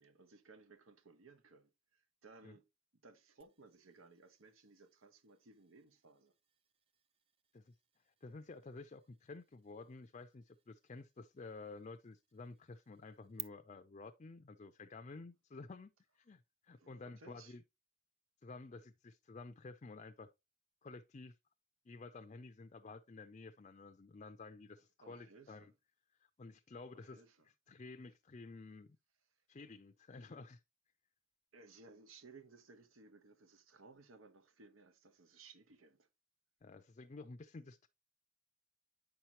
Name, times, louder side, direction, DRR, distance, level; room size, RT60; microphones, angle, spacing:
voice 1, 0.0-2.6 3.0-6.3 16.8-17.5 25.0-25.7 26.9-27.4 31.5-36.1, right 4 dB, 90° right, 1.1 m, -60 dB
sound 1, 3.4-13.4, right 11 dB, 30° right, 0.4 m, -58 dB
voice 2, 8.2-17.6 18.4-20.3 20.8-21.4 21.9-25.7 26.2-27.2 27.7-29.0 29.5-30.6 36.6-37.9, left 3 dB, 35° left, 0.4 m, -52 dB
8.7 x 5.8 x 2.9 m
head